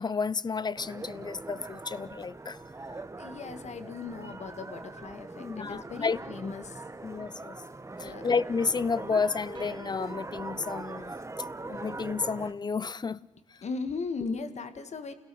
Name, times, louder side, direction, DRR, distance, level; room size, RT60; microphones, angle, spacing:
voice 1, 0.0-2.6 5.4-6.2 7.0-7.6 8.0-11.1 11.7-13.3, left 5 dB, 35° left, 0.6 m, -31 dB
sound 1, 0.8-12.5, right 2 dB, 20° right, 1.3 m, -42 dB
voice 2, 3.2-6.8 8.0-8.2 13.6-15.1, left 4 dB, 60° left, 1.8 m, -37 dB
sound 2, 9.6-10.9, right 4 dB, 40° right, 2.2 m, -57 dB
29.0 x 17.0 x 7.0 m
cardioid pair, 75°, 13 cm